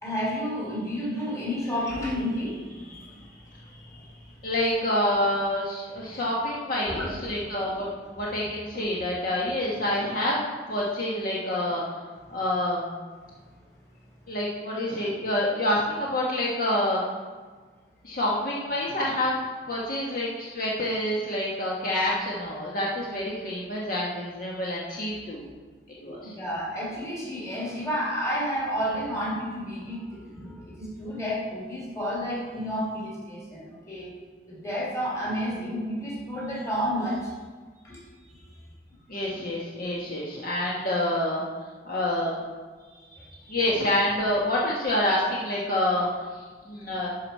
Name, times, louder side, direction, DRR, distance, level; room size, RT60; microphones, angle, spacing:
voice 1, 0.0-4.3 6.0-6.2 6.8-7.1 7.4-7.5 26.1-34.1 34.5-37.3 37.8-38.0 38.3-38.4 43.1-43.6, equal, 20° left, -5 dB, 3.3 m, -31 dB
voice 2, 4.4-11.8 12.3-13.0 14.3-17.0 18.0-25.5 26.0-26.3 39.1-41.4 41.8-42.4 43.5-46.3 46.7-47.1, left 1 dB, 55° left, -4 dB, 1.5 m, -27 dB
12.0 x 5.9 x 4.7 m, 1.4 s
head